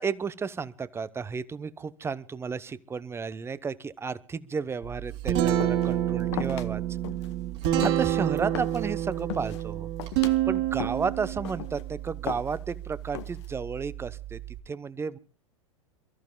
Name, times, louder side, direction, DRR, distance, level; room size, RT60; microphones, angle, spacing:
voice 1, 0.0-6.8 7.8-9.9 10.5-14.4 14.7-15.2, right 5 dB, 15° right, 16 dB, 0.9 m, -32 dB
Guitar, 4.8-14.6, right 12 dB, 55° right, 3.3 m, -29 dB
sound 1, 5.6-6.0 6.3-6.7 7.0-7.3 7.6-8.9 9.2-9.6 10.0-10.4 10.8-11.1 11.4-11.8 12.3-12.7 13.1-13.6, left 12 dB, 60° left, 1.2 m, -37 dB
28.5 x 14.0 x 2.3 m, 0.38 s
figure-of-eight pair, 90°, 17 cm